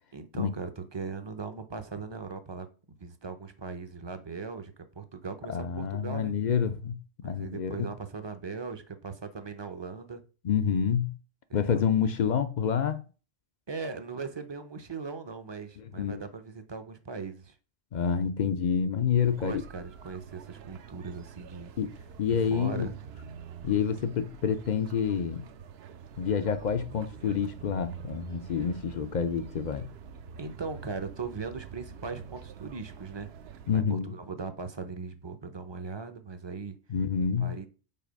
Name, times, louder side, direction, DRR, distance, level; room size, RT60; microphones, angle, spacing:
voice 1, 0.1-2.7 3.0-6.3 7.2-10.2 11.5-11.8 13.7-17.6 19.2-21.7 22.3-23.0 28.6-28.7 30.4-33.3 33.7-36.8 37.4-37.7, right 4 dB, 30° right, 0.5 m, -39 dB
voice 2, 5.5-7.9 10.4-11.2 11.5-13.0 15.8-16.2 17.9-19.6 21.8-21.9 22.2-22.9 23.6-25.4 26.2-29.9 33.7-34.1 36.9-37.5, left 7 dB, 60° left, 0.5 m, -28 dB
sound 1, 19.2-33.8, right 7 dB, 65° right, 0.8 m, -46 dB
5.7 x 4.2 x 5.2 m
omnidirectional pair, 1.3 m